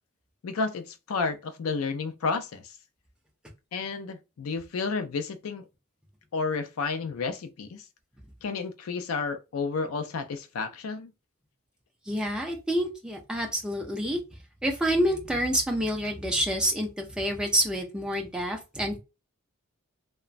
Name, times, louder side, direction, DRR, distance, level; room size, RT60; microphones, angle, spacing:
voice 1, 0.4-2.8 3.7-5.6 6.3-7.8 8.4-11.1, left 4 dB, 85° left, 0.4 m, -31 dB
voice 2, 12.1-14.2 14.6-19.0, equal, 5° right, 0.5 m, -28 dB
2.9 x 2.2 x 2.4 m
head